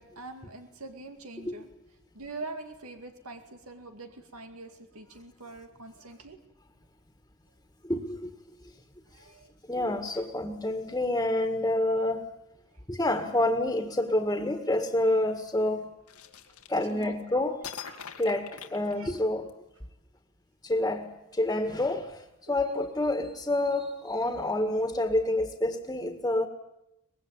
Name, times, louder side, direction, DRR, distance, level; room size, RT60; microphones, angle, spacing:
voice 1, 0.0-1.7 2.1-6.4 9.1-9.5 10.1-10.2 12.7-12.8 14.2-14.3 16.2-16.6 16.9-17.1 17.8-18.1 18.9-19.1 22.4-22.6, right 2 dB, 80° right, 6 dB, 2.3 m, -44 dB
voice 2, 7.8-8.3 9.6-12.3 12.9-15.9 16.7-17.6 18.2-19.5 20.6-26.5, left 1 dB, 15° left, 5 dB, 2.0 m, -28 dB
sound 1, 16.1-17.2 17.6-19.5, left 8 dB, 85° left, 2.2 m, -43 dB
24.5 x 21.0 x 9.0 m, 0.88 s
head